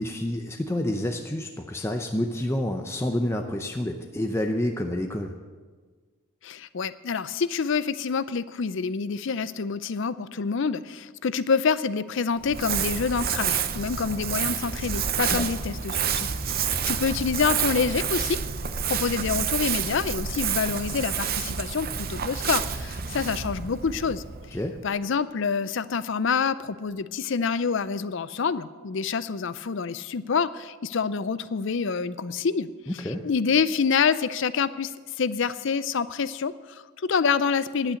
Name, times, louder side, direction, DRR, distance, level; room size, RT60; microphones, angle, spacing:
voice 1, 0.0-5.3 15.3-15.5 24.5-24.8 32.9-33.2, left 1 dB, 10° left, 4 dB, 0.6 m, -28 dB
voice 2, 6.4-18.4 18.9-24.2 24.8-32.7 33.1-38.0, left 5 dB, 55° left, 15 dB, 0.5 m, -27 dB
Crumpling crinkling, 12.4-24.9, right 7 dB, 40° right, 0.6 m, -29 dB
10.5 x 8.8 x 8.4 m, 1.4 s
head